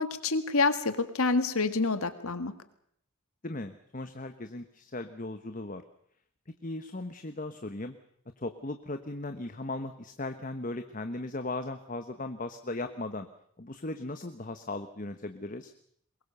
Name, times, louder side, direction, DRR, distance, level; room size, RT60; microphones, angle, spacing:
voice 1, 0.0-2.5, left 3 dB, 75° left, 10 dB, 1.9 m, -27 dB
voice 2, 3.4-5.8 6.6-8.0 8.4-13.3 13.6-15.7, left 2 dB, 35° left, 8 dB, 1.1 m, -37 dB
23.0 x 21.5 x 6.8 m, 0.67 s
head